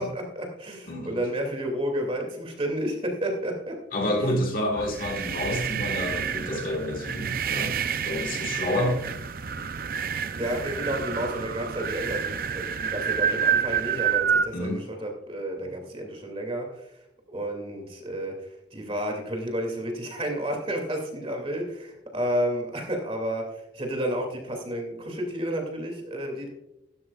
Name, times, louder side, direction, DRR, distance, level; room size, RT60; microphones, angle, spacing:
voice 1, 0.0-3.8 4.1-4.4 10.4-16.9 17.3-26.5, right 1 dB, 30° right, 2.5 m, -31 dB
voice 2, 0.9-1.2 3.9-9.0 14.5-14.8, left 1 dB, 50° left, 1.8 m, -29 dB
sound 1, 4.7-14.5, right 7 dB, 50° right, 0.5 m, -28 dB
15.5 x 13.0 x 2.4 m
head